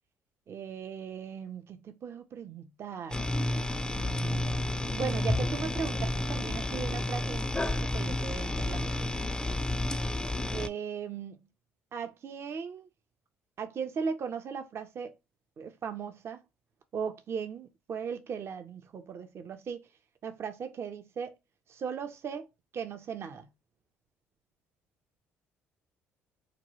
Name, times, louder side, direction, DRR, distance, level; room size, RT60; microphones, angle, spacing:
voice 1, 0.5-3.3 4.0-9.1 10.5-11.4 11.9-12.9 13.6-15.1 15.6-16.4 16.9-19.9 20.2-21.3 21.7-22.5 22.7-23.5, right 6 dB, 50° right, 0.5 m, -38 dB
sound 1, 3.1-10.7, left 1 dB, 15° left, 0.4 m, -31 dB
2.9 x 2.2 x 3.0 m
hypercardioid pair, 60°, 6 cm